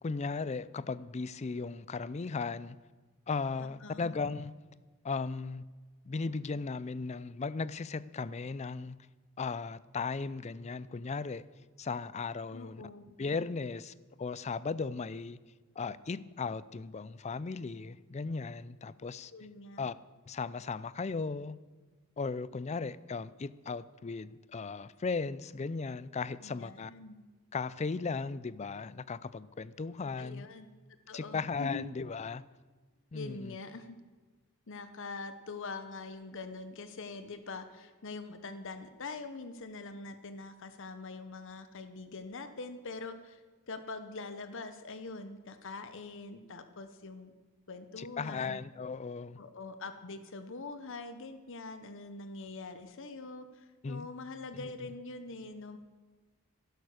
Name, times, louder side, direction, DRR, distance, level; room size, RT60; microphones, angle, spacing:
voice 1, 0.0-2.8 3.3-4.6 5.0-5.6 6.1-9.0 9.4-11.4 11.8-12.8 13.2-15.4 15.8-19.3 19.8-19.9 20.3-21.6 22.2-26.9 27.5-30.5 31.1-32.4 33.1-33.6 48.0-49.4 53.8-54.1 54.5-54.7, left 4 dB, 30° left, 0.4 m, -36 dB
voice 2, 3.6-4.1 12.5-13.0 19.3-19.8 26.4-27.2 30.2-30.7 31.1-31.9 33.1-34.0 34.7-47.3 47.7-48.6 49.4-55.8, left 3 dB, 60° left, 0.9 m, -44 dB
11.5 x 11.5 x 6.4 m
head